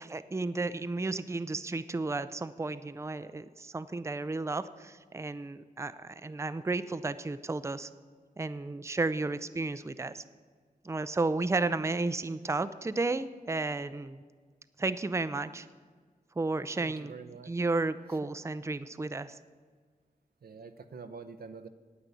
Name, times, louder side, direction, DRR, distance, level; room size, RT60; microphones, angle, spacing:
voice 1, 0.0-7.9 8.4-10.2 10.8-14.2 14.8-15.7 16.4-17.1 17.4-19.4, right 3 dB, 20° right, 13 dB, 0.5 m, -33 dB
voice 2, 16.8-17.5 20.4-21.7, right 5 dB, 85° right, 10 dB, 0.8 m, -46 dB
9.8 x 8.6 x 8.2 m, 1.6 s
cardioid pair, 65°, 15 cm